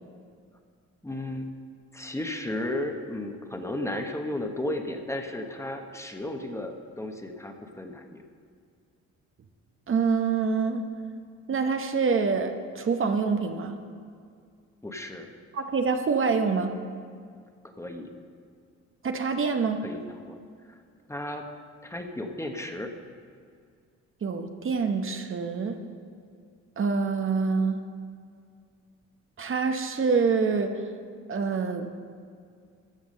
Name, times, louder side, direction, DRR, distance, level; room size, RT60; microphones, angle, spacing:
voice 1, 1.0-1.5 1.9-8.2 14.8-15.3 17.8-18.1 19.8-20.0 20.3-20.4 20.7-20.8 21.1-21.4 21.8-22.9, left 1 dB, 10° left, 4 dB, 1.0 m, -34 dB
voice 2, 9.9-10.8 11.5-13.8 15.5-16.8 19.0-19.8 24.2-25.8 26.8-27.8 29.4-30.8 31.3-31.9, right 5 dB, 45° right, 6 dB, 0.9 m, -26 dB
14.0 x 5.9 x 6.5 m, 2.2 s
cardioid pair, 90°, 30 cm